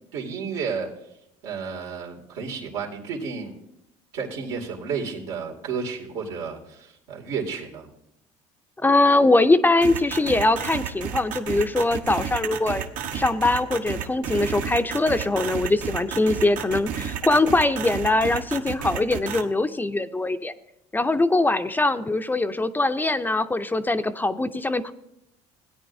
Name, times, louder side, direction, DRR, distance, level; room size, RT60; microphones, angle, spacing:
voice 1, 0.1-0.9 1.4-3.6 4.1-7.9, right 5 dB, 85° right, -1 dB, 2.4 m, -32 dB
voice 2, 8.8-12.8 13.1-20.5 20.9-24.9, left 2 dB, 15° left, 10 dB, 0.5 m, -22 dB
sound 1, 9.8-19.4, right 8 dB, 70° right, 1.0 m, -31 dB
16.5 x 9.2 x 2.7 m, 0.79 s
supercardioid pair, 95°, 14 cm